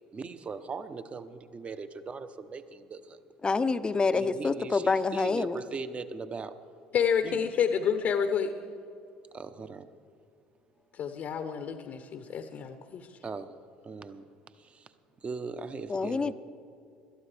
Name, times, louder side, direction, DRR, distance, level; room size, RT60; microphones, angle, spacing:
voice 1, 0.1-3.2 4.1-6.5 7.2-7.4 9.3-9.9 13.2-13.5 13.8-14.3 14.6-14.9 15.2-16.3, right 4 dB, 35° right, 11 dB, 0.8 m, -39 dB
voice 2, 3.4-5.6 15.9-16.3, left 4 dB, 25° left, 12 dB, 0.6 m, -27 dB
voice 3, 6.9-8.5 10.9-13.1, left 7 dB, 55° left, 8 dB, 0.8 m, -29 dB
20.5 x 12.5 x 3.4 m, 2.6 s
hypercardioid pair, 65°, 4 cm